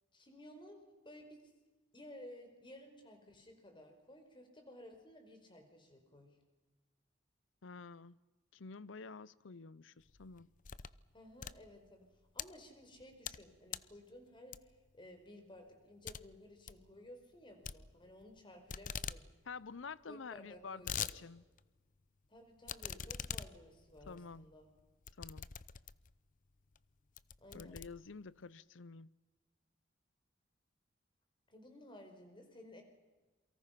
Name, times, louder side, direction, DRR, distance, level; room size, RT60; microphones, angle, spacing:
voice 1, 0.1-1.4 1.9-6.4 11.1-12.1 12.3-19.2 20.1-21.1 22.3-24.7 27.4-27.8 31.5-32.8, left 1 dB, 25° left, 4.7 m, -55 dB
voice 2, 7.6-8.2 8.5-10.5 19.5-21.4 24.1-24.5 25.2-25.5 27.5-29.1, left 4 dB, 90° left, 0.7 m, -49 dB
sound 1, 10.1-11.0 11.3-12.5 13.0-13.4 13.7-14.0 14.5-14.9 15.3-15.4 15.7-15.8 16.1-16.2 16.5-16.8 17.6-18.4 18.7-19.2 19.5-19.6 19.8-19.9 20.5-21.2 21.6-21.7 22.7-26.2 26.7-26.8 27.2-28.4, left 8 dB, 45° left, 0.7 m, -43 dB
28.5 x 23.5 x 5.9 m
head